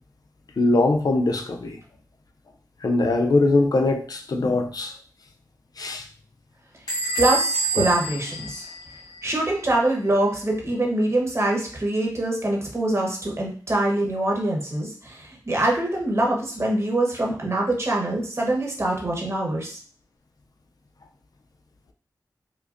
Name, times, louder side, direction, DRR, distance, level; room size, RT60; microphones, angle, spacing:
voice 1, 0.6-1.8 2.8-4.9 5.8-6.1 7.8-7.9, left 2 dB, 60° left, 0.5 m, -21 dB
Bell / Squeak, 6.9-9.4, right 3 dB, 85° left, 1.3 m, -27 dB
voice 2, 7.2-8.6 9.2-19.8, right 1 dB, 40° right, 1.1 m, -24 dB
5.0 x 2.1 x 2.6 m
wide cardioid pair, 70°, 7 cm